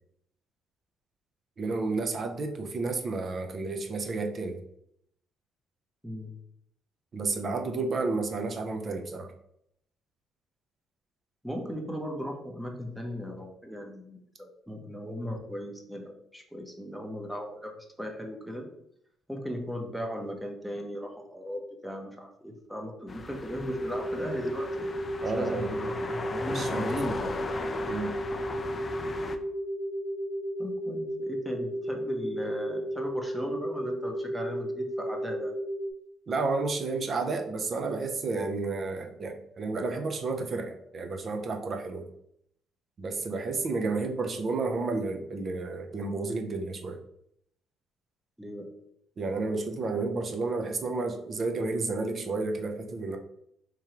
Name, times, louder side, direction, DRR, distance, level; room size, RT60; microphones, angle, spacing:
voice 1, 1.6-4.6 7.1-9.3 25.2-25.7 26.5-27.2 27.9-28.2 36.3-42.1 43.0-47.0 49.2-53.2, right 3 dB, 45° right, 4 dB, 0.6 m, -31 dB
voice 2, 6.0-6.4 11.4-18.7 19.3-24.9 25.4-27.3 28.7-28.9 30.6-35.6 43.8-44.0 48.4-48.7, equal, 5° right, 2 dB, 0.8 m, -37 dB
sound 1, 23.1-29.4, left 3 dB, 30° left, 0.4 m, -38 dB
sound 2, 23.6-35.9, equal, 80° left, 0.5 m, -34 dB
3.6 x 3.1 x 2.9 m, 0.74 s
cardioid pair, 95°, 0 cm